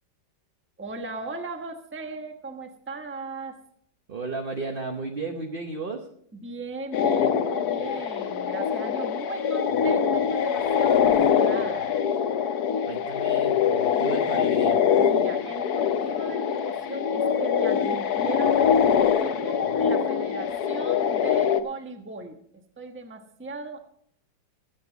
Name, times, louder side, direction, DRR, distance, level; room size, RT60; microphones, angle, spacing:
voice 1, 0.8-3.6 6.3-11.9 15.0-22.4 22.8-23.8, right 3 dB, 10° right, 5 dB, 0.9 m, -37 dB
voice 2, 4.1-6.1 12.9-14.8, right 3 dB, 40° right, 4 dB, 0.9 m, -33 dB
sound 1, 6.9-21.6, left 7 dB, 65° left, 1.2 m, -23 dB
21.5 x 8.3 x 4.0 m, 0.65 s
omnidirectional pair, 2.0 m